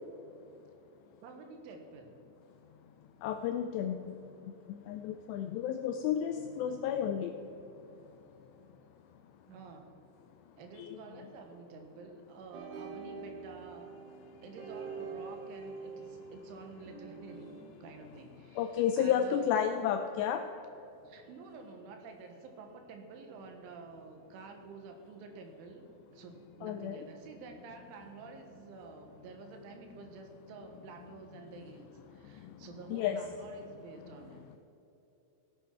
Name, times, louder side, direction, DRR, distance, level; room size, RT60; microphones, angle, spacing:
voice 1, 1.2-2.2 9.5-9.9 10.6-13.9 14.4-17.6 17.8-19.8 21.1-25.9 26.1-34.5, right 4 dB, 85° right, 4 dB, 3.7 m, -50 dB
voice 2, 3.2-4.0 4.9-7.3 18.6-20.4 26.6-27.0 32.9-33.2, left 9 dB, 85° left, 6 dB, 2.4 m, -31 dB
sound 1, 12.5-17.6, right 5 dB, 70° right, 3.0 m, -45 dB
16.5 x 8.5 x 4.5 m, 3.0 s
omnidirectional pair, 5.4 m